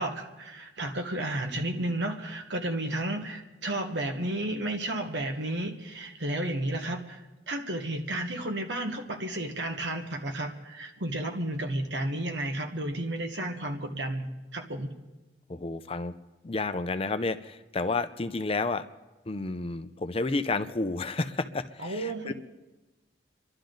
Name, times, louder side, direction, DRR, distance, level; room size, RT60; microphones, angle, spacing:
voice 1, 0.0-14.9 21.8-22.3, right 1 dB, 80° right, 4 dB, 1.6 m, -32 dB
voice 2, 15.5-16.1 16.4-18.8 19.3-22.3, left 3 dB, 30° left, 11 dB, 0.6 m, -31 dB
28.5 x 11.5 x 3.9 m, 1.1 s
head